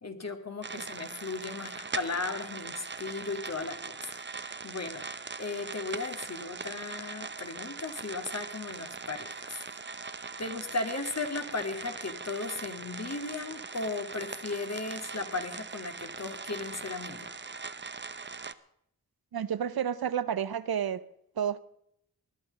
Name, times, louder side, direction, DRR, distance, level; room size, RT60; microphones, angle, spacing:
voice 1, 0.0-4.0 4.3-5.0 5.4-9.6 10.1-17.3, left 3 dB, 45° left, 6 dB, 2.3 m, -36 dB
sound 1, 0.6-18.5, right 4 dB, 30° right, 0.9 m, -41 dB
voice 2, 19.3-21.0 21.4-21.6, right 8 dB, 85° right, 15 dB, 0.9 m, -30 dB
20.0 x 11.0 x 5.3 m, 0.72 s
cardioid pair, 65°, 36 cm